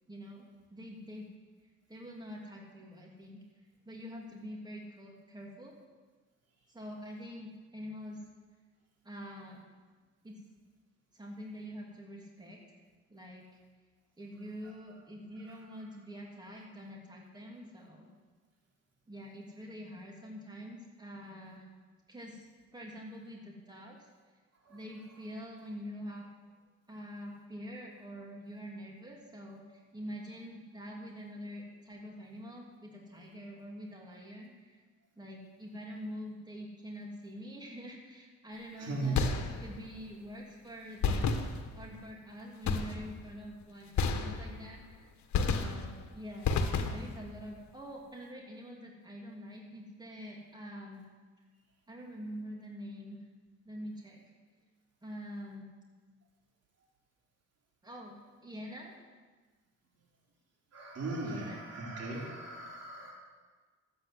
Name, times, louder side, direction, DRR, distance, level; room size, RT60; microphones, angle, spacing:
voice 1, 0.1-1.3 1.9-3.4 3.8-5.8 6.7-8.2 9.0-9.6 10.2-10.4 11.1-12.8 13.1-13.5 14.2-18.1 19.1-21.6 22.1-22.4 22.7-24.0 24.7-26.3 26.9-34.8 35.2-39.2 39.6-41.4 41.7-45.1 45.4-51.0 51.9-53.2 53.6-54.2 55.0-55.7 57.8-58.2 58.4-58.9 61.2-61.7, equal, 15° right, -1 dB, 2.9 m, -45 dB
voice 2, 38.8-39.3 60.7-63.1, right 2 dB, 55° right, -2 dB, 3.8 m, -37 dB
sound 1, 39.2-39.9 41.0-42.0 42.6-43.3 44.0-44.8 45.3-46.0 46.4-47.3, left 5 dB, 65° left, 1.5 m, -31 dB
13.5 x 8.8 x 7.8 m, 1.4 s
cardioid pair, 90°, 30 cm